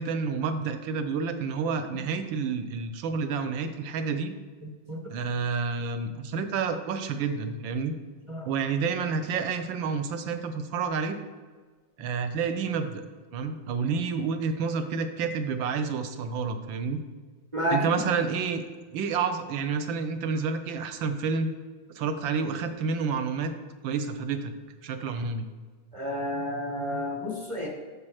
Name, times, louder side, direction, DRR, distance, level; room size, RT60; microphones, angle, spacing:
voice 1, 0.0-4.3 5.1-7.9 8.4-11.2 12.0-13.0 13.3-17.0 17.7-18.6 18.9-21.5 21.9-23.5 23.8-24.5 24.8-25.5, right 5 dB, 75° right, 9 dB, 1.5 m, -29 dB
voice 2, 25.9-27.7, equal, 20° right, 1 dB, 0.9 m, -30 dB
8.7 x 6.8 x 4.8 m, 1.4 s
omnidirectional pair, 2.2 m